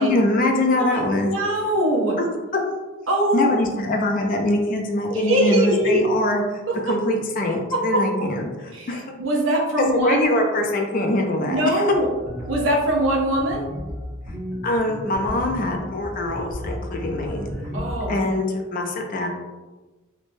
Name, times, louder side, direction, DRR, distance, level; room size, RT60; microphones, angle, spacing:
voice 1, 0.0-1.3 2.5-2.6 3.3-6.4 6.9-9.0 9.8-11.8 14.6-17.5 18.1-19.3, left 1 dB, 40° left, 2 dB, 0.4 m, -23 dB
voice 2, 0.8-2.2 3.1-3.6 5.1-6.0 6.7-6.8 7.7-8.0 8.7-8.9 9.2-10.3 11.4-12.1 12.5-13.7 17.7-18.2, right 1 dB, 75° right, 0 dB, 0.6 m, -22 dB
sound 1, 11.9-18.1, equal, 35° right, 1.0 m, -34 dB
3.1 x 2.0 x 2.5 m, 1.2 s
head